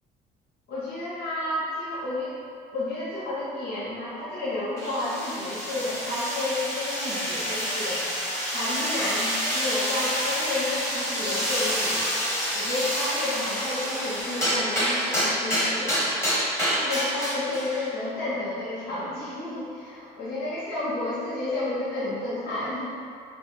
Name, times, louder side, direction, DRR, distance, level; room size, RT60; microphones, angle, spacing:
voice 1, 0.7-2.3 2.7-8.0 8.5-12.0 12.5-16.1 16.8-22.9, left 2 dB, 70° left, -11 dB, 1.1 m, -31 dB
sound 1, 4.8-17.9, equal, 15° left, 1.2 m, -28 dB
3.3 x 2.3 x 4.3 m, 2.3 s
cardioid pair, 110°, 17 cm